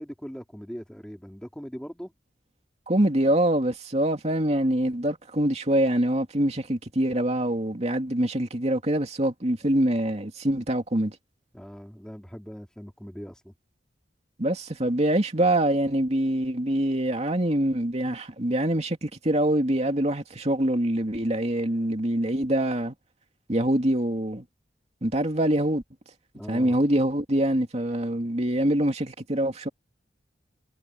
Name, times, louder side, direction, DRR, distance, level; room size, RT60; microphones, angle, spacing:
voice 1, 0.0-2.1 11.5-13.5 26.3-26.8, equal, 5° left, 3.8 m, -40 dB
voice 2, 2.9-11.2 14.4-22.9 23.5-24.4 25.0-25.8 26.5-29.7, right 1 dB, 40° right, 2.6 m, -24 dB
head